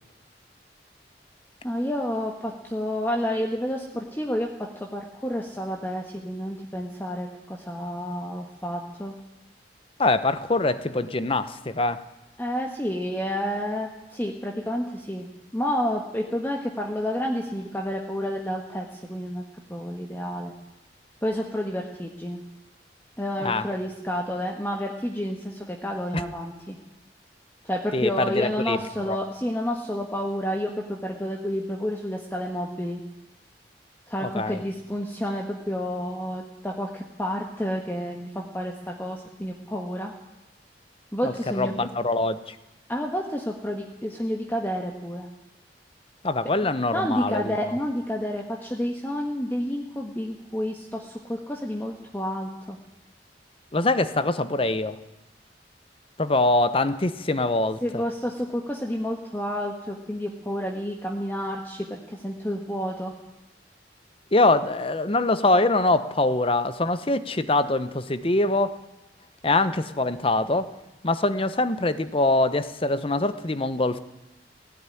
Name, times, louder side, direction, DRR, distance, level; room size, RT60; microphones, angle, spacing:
voice 1, 1.6-9.1 12.4-15.3 15.5-19.4 19.7-20.5 21.2-22.4 23.2-26.8 27.6-33.0 34.1-40.1 41.1-41.7 42.9-45.3 46.6-46.7 46.9-52.8 57.8-63.1, equal, 10° left, 1 dB, 1.5 m, -30 dB
voice 2, 10.0-12.0 23.4-23.7 26.1-26.2 27.9-28.8 29.1-29.2 34.2-34.6 41.2-42.6 46.2-47.5 53.7-55.0 56.2-58.0 64.3-68.8 69.4-70.7 71.0-74.0, left 2 dB, 30° left, 12 dB, 0.9 m, -24 dB
17.0 x 16.0 x 9.9 m, 0.99 s
head